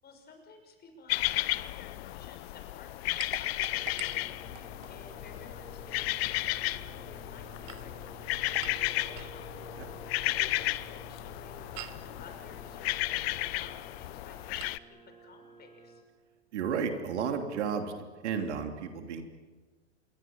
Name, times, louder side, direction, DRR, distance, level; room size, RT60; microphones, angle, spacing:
voice 1, 0.0-16.0, left 4 dB, 30° left, 5 dB, 6.2 m, -54 dB
sound 1, 1.1-14.8, left 18 dB, 60° left, 0.9 m, -34 dB
sound 2, 3.2-5.0 7.4-9.4 11.7-12.1 14.6-14.8, right 16 dB, 60° right, 1.5 m, -47 dB
sound 3, 3.7-16.0, right 5 dB, 15° right, 6.2 m, -52 dB
voice 2, 16.5-17.9 18.2-19.2, right 6 dB, 75° right, 5 dB, 3.3 m, -32 dB
27.0 x 22.5 x 7.4 m, 1.4 s
hypercardioid pair, 110°, 34 cm